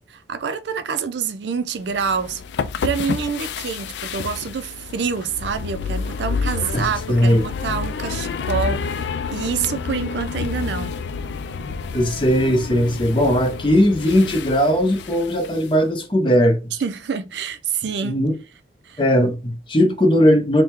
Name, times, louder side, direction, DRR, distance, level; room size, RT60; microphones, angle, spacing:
voice 1, 0.1-2.4 2.8-9.0 9.3-11.0 16.8-18.2 18.8-19.0, right 6 dB, 80° right, 0.4 m, -26 dB
sound 1, 1.9-15.7, left 5 dB, 80° left, 0.4 m, -29 dB
voice 2, 7.1-7.4 11.9-16.6 18.0-18.3 19.0-20.6, equal, 30° left, 0.7 m, -18 dB
3.5 x 2.2 x 4.4 m
head